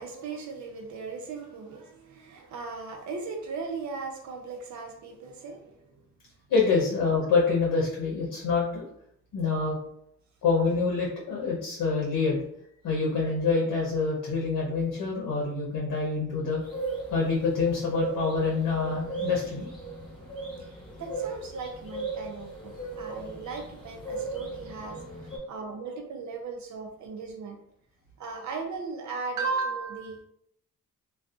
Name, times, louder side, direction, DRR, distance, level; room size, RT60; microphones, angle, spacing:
voice 1, 0.0-6.0 21.0-25.0 25.5-27.6 28.2-30.2, right 4 dB, 60° right, 3 dB, 0.6 m, -37 dB
voice 2, 6.5-8.8 9.3-9.8 10.4-12.4 12.8-16.6 17.1-19.7, left 4 dB, 70° left, -3 dB, 0.8 m, -26 dB
sound 1, 16.6-25.4, right 3 dB, 15° left, 1.3 m, -37 dB
2.5 x 2.3 x 2.4 m, 0.72 s
cardioid pair, 90°, 32 cm